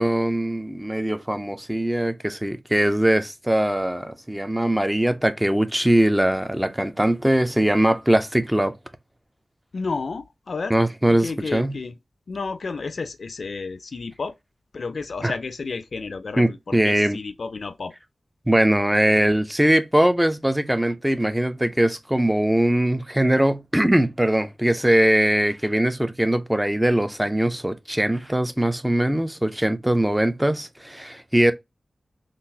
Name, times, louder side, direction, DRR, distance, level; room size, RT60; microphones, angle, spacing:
voice 1, 0.0-8.7 10.7-11.7 15.2-15.3 16.4-17.2 18.5-31.5, right 1 dB, 10° right, 0.4 m, -21 dB
voice 2, 9.7-10.8 11.1-12.0 12.3-14.3 14.7-17.9, left 4 dB, 65° left, 0.3 m, -31 dB
3.8 x 2.4 x 2.6 m
wide cardioid pair, 110°, 0 cm